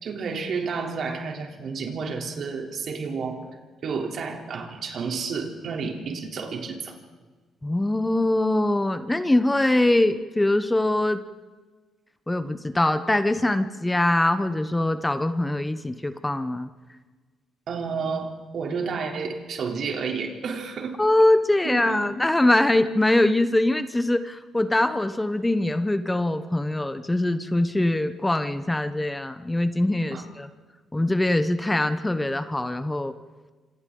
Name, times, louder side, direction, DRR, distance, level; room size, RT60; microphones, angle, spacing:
voice 1, 0.0-3.4 3.8-7.0 17.7-21.0 21.6-22.1 30.1-30.2, right 5 dB, 60° right, 2 dB, 3.4 m, -31 dB
voice 2, 7.6-11.2 12.3-16.7 21.0-30.5 30.9-33.1, left 1 dB, 10° left, 10 dB, 1.0 m, -23 dB
27.0 x 26.5 x 3.9 m, 1.4 s
cardioid pair, 90°, 0 cm